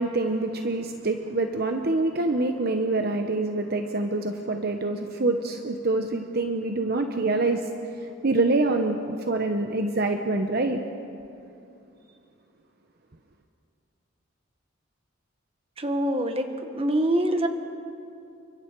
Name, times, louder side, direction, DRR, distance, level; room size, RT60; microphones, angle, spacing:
voice 1, 0.0-7.6 8.2-10.8, right 2 dB, 50° right, 5 dB, 1.0 m, -25 dB
voice 2, 15.8-17.5, right 1 dB, 30° right, 6 dB, 1.5 m, -25 dB
29.0 x 24.0 x 4.7 m, 2.6 s
head